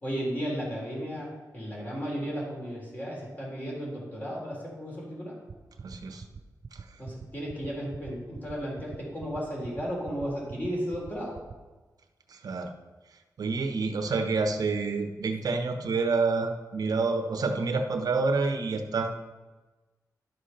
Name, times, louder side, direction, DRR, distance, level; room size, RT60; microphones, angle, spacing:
voice 1, 0.0-5.3 7.0-11.4, equal, 25° left, -4 dB, 3.7 m, -34 dB
sound 1, 5.5-11.5, right 5 dB, 40° right, 0.5 m, -42 dB
voice 2, 5.8-6.3 6.7-6.8 12.3-12.7 13.4-19.1, right 4 dB, 70° right, 6 dB, 1.1 m, -28 dB
11.0 x 6.6 x 5.8 m, 1.2 s
wide cardioid pair, 120°, 7 cm